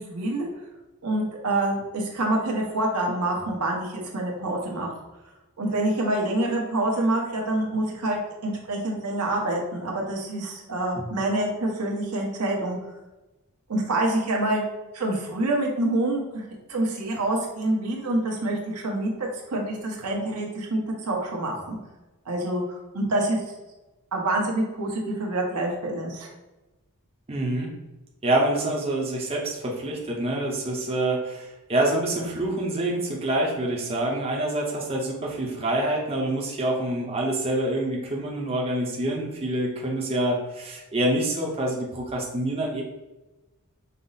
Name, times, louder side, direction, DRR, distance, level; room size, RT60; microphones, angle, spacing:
voice 1, 0.1-0.5 1.0-5.0 5.6-12.8 13.7-14.6 14.9-21.8 22.3-23.4 24.1-26.3, right 1 dB, 90° right, -1 dB, 1.0 m, -26 dB
voice 2, 27.3-27.7 28.2-42.8, right 1 dB, 25° right, -2 dB, 0.7 m, -26 dB
5.4 x 2.0 x 4.0 m, 1.1 s
head